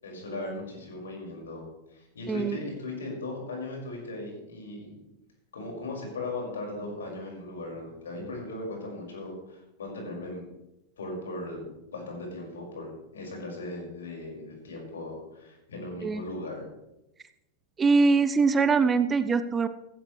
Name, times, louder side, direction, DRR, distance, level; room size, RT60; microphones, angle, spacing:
voice 1, 0.0-1.6 1.9-4.9 5.5-10.4 11.0-16.6, left 2 dB, 65° left, 0 dB, 5.4 m, -38 dB
voice 2, 17.8-19.7, right 4 dB, 20° right, 12 dB, 0.7 m, -23 dB
15.5 x 15.0 x 3.2 m, 0.90 s
figure-of-eight pair, 90°, 0 cm